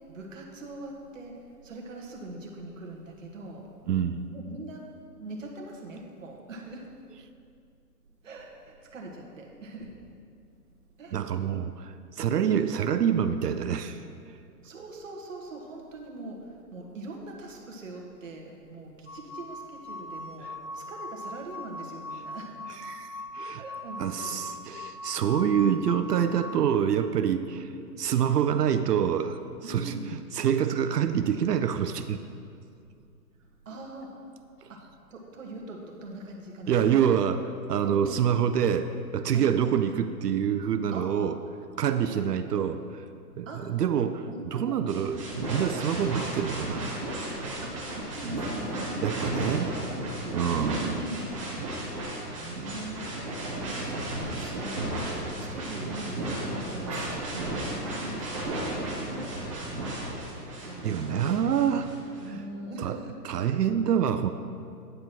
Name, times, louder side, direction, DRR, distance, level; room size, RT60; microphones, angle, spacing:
voice 1, 0.1-3.7 4.3-4.9 5.2-6.9 8.2-9.9 11.0-11.2 12.2-12.4 14.6-22.6 23.5-24.4 27.3-27.7 29.6-30.2 33.6-34.3 34.7-34.8 35.1-37.0 37.3-37.4 37.7-38.2 39.3-39.5 40.9-41.3 41.9-42.5 43.4-43.7 44.3-45.5 47.6-53.1 53.7-59.9 60.6-61.6 62.2-63.2, right 2 dB, 50° right, 0 dB, 1.3 m, -42 dB
voice 2, 3.9-4.2 11.1-14.0 22.9-23.1 23.3-23.6 24.0-27.4 28.0-29.4 29.7-32.2 36.7-37.4 37.7-41.3 41.8-43.0 43.4-46.8 49.0-49.7 50.3-51.0 60.8-61.9 62.3-62.4 62.8-63.0 63.2-64.3, right 8 dB, 70° right, 10 dB, 0.6 m, -26 dB
sound 1, 19.1-26.6, left 2 dB, 50° left, 1.0 m, -40 dB
sound 2, 44.9-62.2, right 1 dB, 20° right, 1.1 m, -34 dB
9.6 x 4.6 x 5.9 m, 2.4 s
hypercardioid pair, 175°, 50 cm